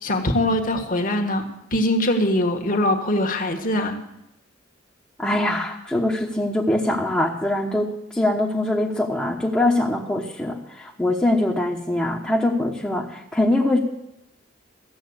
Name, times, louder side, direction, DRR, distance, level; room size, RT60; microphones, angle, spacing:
voice 1, 0.0-4.0, left 1 dB, 45° left, 3 dB, 1.7 m, -22 dB
voice 2, 5.2-13.8, left 1 dB, 5° left, -3 dB, 1.1 m, -23 dB
15.0 x 7.8 x 8.0 m, 0.87 s
head